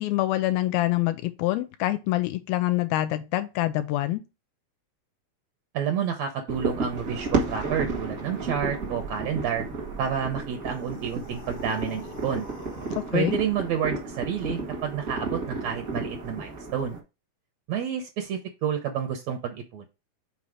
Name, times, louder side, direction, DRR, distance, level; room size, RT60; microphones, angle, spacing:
voice 1, 0.0-4.2 13.0-13.4, left 16 dB, 85° left, 2.4 m, -26 dB
voice 2, 5.7-9.7 10.0-12.5 13.1-17.0 17.7-19.9, right 8 dB, 80° right, 1.5 m, -29 dB
sound 1, 6.5-17.0, right 3 dB, 60° right, 0.9 m, -32 dB
sound 2, 10.6-13.2, left 3 dB, 60° left, 1.0 m, -46 dB
5.6 x 4.2 x 4.8 m
omnidirectional pair, 4.2 m